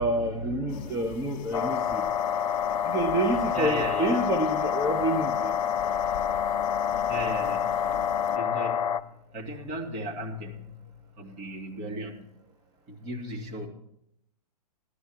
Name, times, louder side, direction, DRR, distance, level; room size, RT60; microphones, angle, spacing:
voice 1, 0.0-2.1 2.8-5.5, right 1 dB, 15° right, 4 dB, 0.9 m, -28 dB
sound 1, 0.7-8.4, left 11 dB, 55° left, 1.3 m, -43 dB
sound 2, 1.5-9.0, left 8 dB, 80° left, 0.6 m, -27 dB
voice 2, 3.5-4.2 7.1-7.7 8.3-9.0 9.3-10.8 11.2-12.3 12.9-13.7, right 1 dB, 35° right, 1 dB, 2.5 m, -36 dB
13.0 x 13.0 x 4.7 m, 0.77 s
hypercardioid pair, 120°, 20 cm